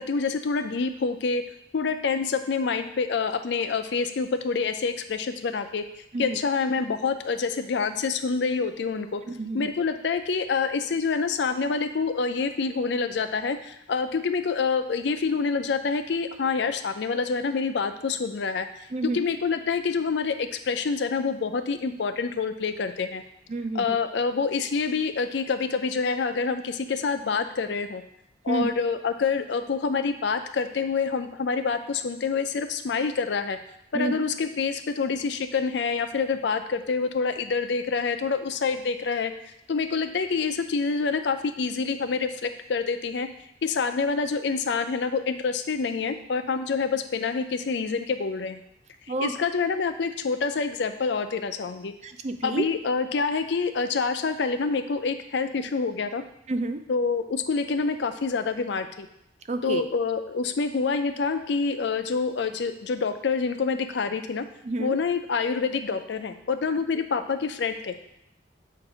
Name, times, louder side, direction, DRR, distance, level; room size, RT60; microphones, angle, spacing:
voice 1, 0.0-5.8 6.2-9.2 9.5-18.7 19.0-23.2 23.7-28.0 28.4-33.6 33.9-39.3 39.7-43.3 43.6-48.6 49.2-51.9 52.4-56.2 56.9-59.1 59.6-64.5 64.8-67.9, left 5 dB, 65° left, 8 dB, 0.4 m, -27 dB
voice 2, 9.4-9.7 18.9-19.2 23.5-24.0 28.5-28.7 33.9-34.1 49.1-49.3 52.0-52.7 56.5-56.8 59.5-59.8 64.6-65.0, right 2 dB, 35° right, 7 dB, 0.4 m, -29 dB
7.5 x 2.6 x 4.9 m, 0.80 s
head